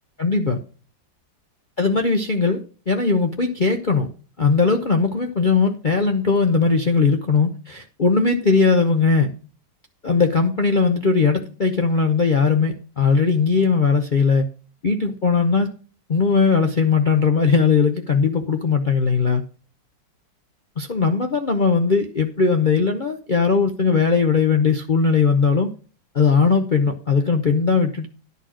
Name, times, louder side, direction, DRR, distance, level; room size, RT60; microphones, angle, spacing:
voice 1, 0.2-0.6 1.8-2.6 2.9-4.1 4.4-9.3 10.0-14.4 14.8-15.7 16.1-19.4 20.8-25.7 26.1-28.1, left 4 dB, 60° left, 4 dB, 0.5 m, -19 dB
11.0 x 4.2 x 7.5 m, 0.38 s
omnidirectional pair, 2.1 m